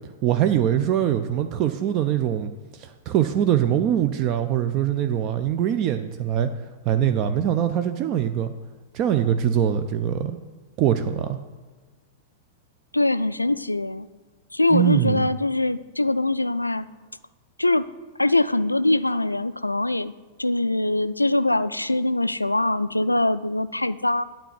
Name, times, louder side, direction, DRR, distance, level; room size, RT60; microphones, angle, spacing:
voice 1, 0.2-6.5 6.9-8.5 8.9-10.4 10.8-11.4 14.7-15.3, right 10 dB, 35° right, 9 dB, 0.5 m, -23 dB
voice 2, 12.9-14.1 14.5-16.9 17.6-17.9 18.2-20.1 20.4-24.2, left 2 dB, 85° left, 15 dB, 0.3 m, -22 dB
9.1 x 4.4 x 7.4 m, 1.3 s
figure-of-eight pair, 95°, 0 cm